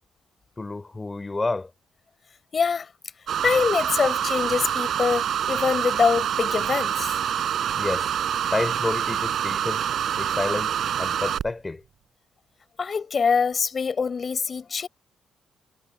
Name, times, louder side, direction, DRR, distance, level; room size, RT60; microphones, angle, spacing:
voice 1, 0.6-1.7 7.8-8.1 8.5-9.8 10.2-10.7 11.0-11.8, left 3 dB, 20° left, 3.5 m, -29 dB
voice 2, 2.5-2.9 3.4-7.2 12.8-14.9, left 5 dB, 40° left, 6.1 m, -24 dB
sound 1, 3.3-11.5, right 9 dB, 65° right, 3.8 m, -26 dB
cardioid pair, 90°, 0 cm